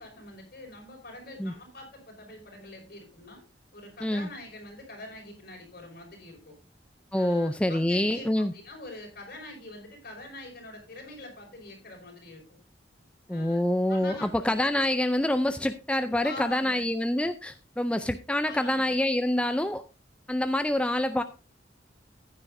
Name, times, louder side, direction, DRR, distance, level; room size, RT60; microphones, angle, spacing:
voice 1, 0.0-3.4 3.7-6.6 7.1-12.6 13.3-13.6 13.9-14.3 16.2-16.9 18.4-19.0, left 2 dB, 55° left, 0 dB, 5.3 m, -44 dB
voice 2, 7.1-8.5 13.3-19.8 20.3-21.2, left 1 dB, 5° left, 9 dB, 0.4 m, -26 dB
14.5 x 9.9 x 2.6 m, 0.31 s
head